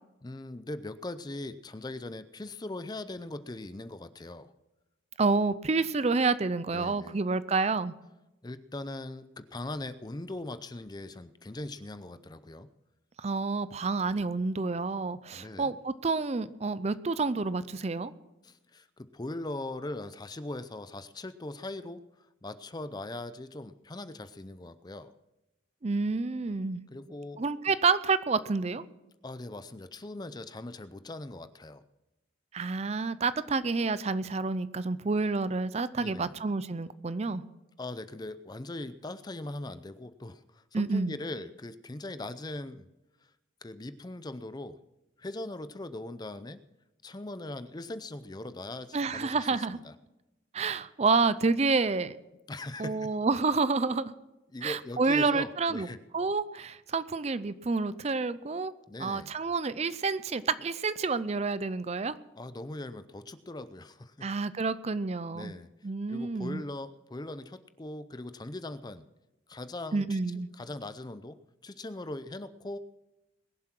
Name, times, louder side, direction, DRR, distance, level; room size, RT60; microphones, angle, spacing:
voice 1, 0.2-4.5 6.7-7.2 8.4-12.7 15.3-15.7 18.4-22.0 22.4-25.1 26.9-27.4 29.2-31.8 36.0-36.3 37.8-42.9 43.6-44.8 45.2-46.6 47.0-49.9 52.5-53.1 54.5-56.0 58.9-59.3 62.4-64.3 65.3-65.7 66.1-69.0 69.5-70.2 70.5-71.4 71.6-72.8, left 2 dB, 20° left, 12 dB, 0.5 m, -40 dB
voice 2, 5.2-7.9 13.2-18.1 25.8-26.8 27.4-28.8 32.5-37.4 40.7-41.1 48.9-49.8 50.5-52.1 52.8-54.1 54.6-55.9 56.1-58.7 59.0-62.1 64.2-65.5 65.8-66.6 69.9-70.5, right 4 dB, 35° right, 15 dB, 0.5 m, -29 dB
21.5 x 7.6 x 6.0 m, 0.98 s
head